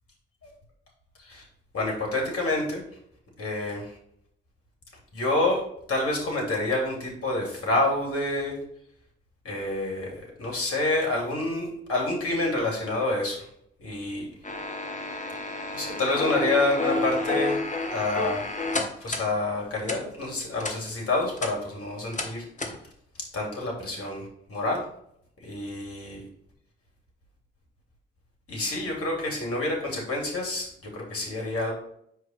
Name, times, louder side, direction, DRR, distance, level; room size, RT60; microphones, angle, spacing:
voice 1, 1.7-2.8 3.4-3.9 5.1-5.6 5.9-8.5 9.4-13.4 13.8-14.2 15.7-17.6 17.9-18.5 19.0-22.4 23.3-24.8 25.4-26.2 28.5-31.7, left 2 dB, 50° left, -1 dB, 2.7 m, -28 dB
sound 1, 14.4-19.3 19.8-20.0 20.6-20.8 21.2-21.5 22.1-22.3 22.6-22.8, left 2 dB, 25° left, 1.4 m, -30 dB
4.9 x 4.0 x 5.3 m, 0.69 s
hypercardioid pair, 40°, 29 cm